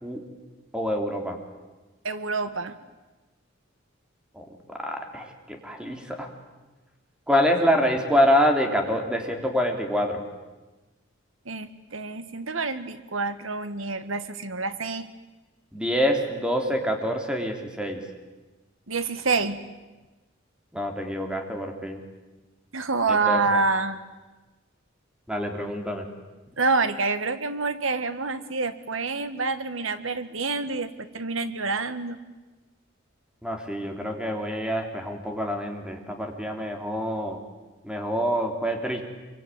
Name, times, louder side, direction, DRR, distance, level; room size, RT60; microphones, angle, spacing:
voice 1, 0.7-1.4 4.3-6.3 7.3-10.2 15.7-18.0 20.7-22.0 23.1-23.6 25.3-26.1 33.4-37.4 37.8-39.0, equal, 5° right, 3 dB, 3.4 m, -26 dB
voice 2, 2.0-2.7 11.4-15.1 18.9-19.7 22.7-24.0 26.6-32.2, right 4 dB, 90° right, 11 dB, 1.7 m, -27 dB
25.5 x 24.0 x 9.3 m, 1.2 s
head